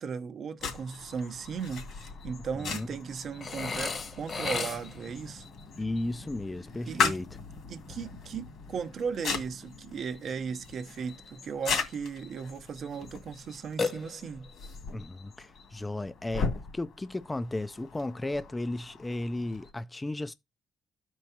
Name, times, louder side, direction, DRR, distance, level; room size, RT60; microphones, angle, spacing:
voice 1, 0.0-5.5 6.9-7.2 7.7-14.5, right 6 dB, 60° right, 0.7 m, -37 dB
sound 1, 0.6-19.7, left 5 dB, 75° left, 2.2 m, -38 dB
voice 2, 2.5-2.9 5.8-7.3 14.9-16.5 16.7-20.3, left 2 dB, 15° left, 0.4 m, -34 dB
Burping eructation, 3.4-5.1 13.8-14.6, left 4 dB, 45° left, 1.1 m, -34 dB
13.5 x 4.5 x 2.8 m
cardioid pair, 90°, 0 cm